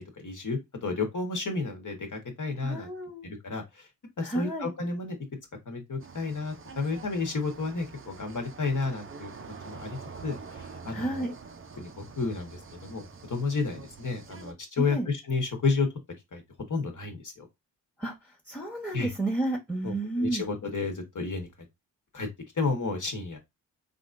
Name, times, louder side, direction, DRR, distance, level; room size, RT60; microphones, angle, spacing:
voice 1, 0.0-2.9 3.2-3.9 4.2-5.2 5.7-9.3 9.6-11.3 11.8-15.9 16.3-16.4 16.7-17.5 18.9-19.1 19.8-21.5 22.1-22.3 22.6-23.4, left 4 dB, 45° left, 1.3 m, -31 dB
voice 2, 2.6-3.3 4.2-4.7 10.9-11.3 14.8-15.1 18.0-20.5, right 2 dB, 5° right, 1.2 m, -31 dB
sound 1, 6.0-14.5, right 5 dB, 30° right, 0.6 m, -46 dB
3.5 x 2.5 x 2.6 m
supercardioid pair, 45°, 44 cm